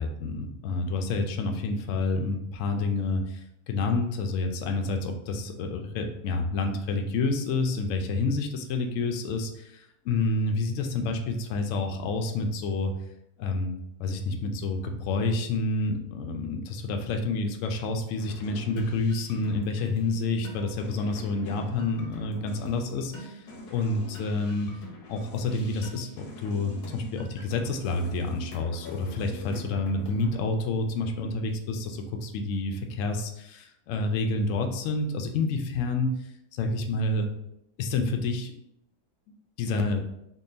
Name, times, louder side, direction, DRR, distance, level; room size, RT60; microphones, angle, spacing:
voice 1, 0.0-12.9 13.4-13.7 14.0-23.4 23.7-24.7 25.1-36.2 36.5-37.3 37.8-38.5 39.6-40.0, left 3 dB, 70° left, 4 dB, 0.8 m, -29 dB
sound 1, 18.2-30.4, equal, 85° left, 1.3 m, -44 dB
3.8 x 2.3 x 3.7 m, 0.78 s
omnidirectional pair, 1.6 m